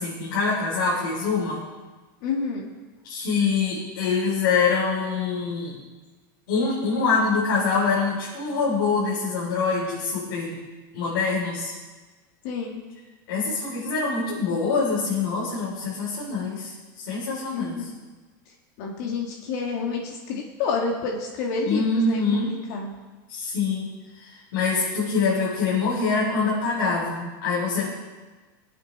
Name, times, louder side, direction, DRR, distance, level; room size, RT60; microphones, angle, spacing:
voice 1, 0.0-1.6 3.0-5.8 6.5-10.6 10.9-11.7 13.3-17.9 21.6-22.5 23.3-23.9 24.2-27.9, left 4 dB, 85° left, -7 dB, 4.1 m, -25 dB
voice 2, 2.2-2.7 12.4-12.8 17.5-18.0 18.8-22.9, left 4 dB, 55° left, 0 dB, 1.9 m, -29 dB
19.0 x 8.8 x 4.2 m, 1.3 s
supercardioid pair, 155°, 11 cm